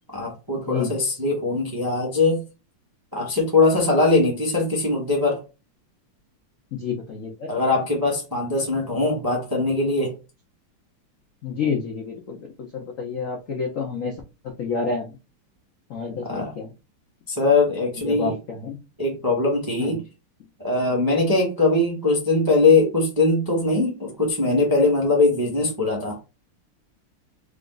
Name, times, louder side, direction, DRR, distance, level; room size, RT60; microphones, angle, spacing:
voice 1, 0.1-2.4 3.1-5.4 7.5-10.1 16.2-16.5 17.3-18.3 19.0-20.0 20.6-26.2, left 3 dB, 25° right, 0.5 m, -21 dB
voice 2, 6.7-7.5 11.4-14.2 14.4-15.2 15.9-16.7 18.0-18.8 19.8-20.0, left 5 dB, 75° left, 0.7 m, -29 dB
3.5 x 2.5 x 3.8 m
omnidirectional pair, 2.4 m